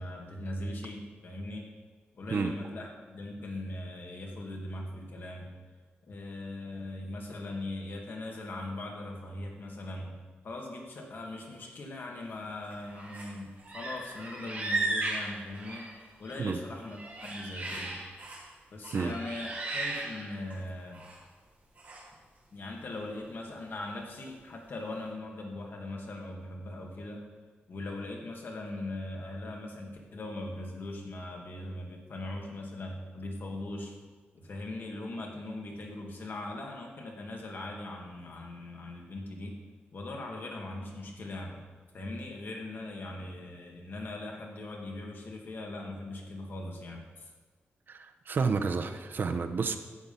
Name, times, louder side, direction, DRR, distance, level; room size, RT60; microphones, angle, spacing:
voice 1, 0.0-1.7 2.1-5.6 6.1-10.1 10.4-15.9 16.2-18.0 18.7-21.1 22.5-27.2 27.7-33.9 34.3-39.6 39.9-41.6 41.9-47.3, left 2 dB, 60° left, 0 dB, 2.1 m, -40 dB
sound 1, 12.7-13.3 13.6-16.3 16.7-18.5 18.8-20.6 20.9-21.2 21.8-22.0, right 2 dB, 40° right, 4.0 m, -36 dB
voice 2, 47.9-49.8, right 5 dB, 55° right, 6 dB, 0.9 m, -30 dB
12.5 x 7.7 x 5.5 m, 1.4 s
wide cardioid pair, 135°, 4 cm